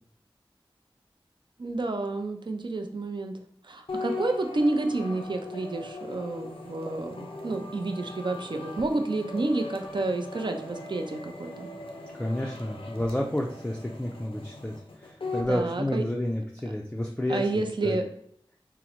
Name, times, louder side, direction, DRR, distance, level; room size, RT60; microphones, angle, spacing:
voice 1, 1.6-3.3 3.6-11.7 15.5-16.0 17.3-18.1, right 2 dB, 55° right, 5 dB, 0.5 m, -30 dB
sound 1, 3.9-15.5, left 2 dB, 75° left, 0.5 m, -40 dB
voice 2, 12.1-14.7 15.0-17.4 17.8-18.0, left 1 dB, 10° left, 0 dB, 0.4 m, -30 dB
3.6 x 2.0 x 2.9 m, 0.68 s
wide cardioid pair, 55°, 9 cm